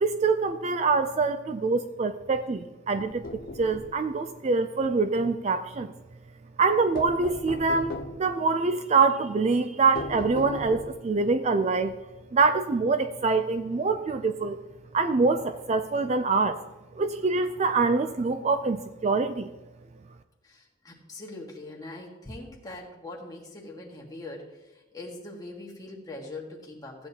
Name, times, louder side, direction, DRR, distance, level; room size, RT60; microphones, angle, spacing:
voice 1, 0.0-3.2 3.6-5.9 6.6-12.0 12.3-14.6 14.9-16.6 17.0-19.5, right 4 dB, 35° right, 9 dB, 0.4 m, -25 dB
sound 1, 3.0-4.0 7.0-8.3 10.0-11.1, left 2 dB, 50° left, 0.7 m, -37 dB
voice 2, 20.4-27.1, left 2 dB, 20° left, -1 dB, 1.7 m, -42 dB
15.0 x 9.0 x 2.9 m, 1.1 s
head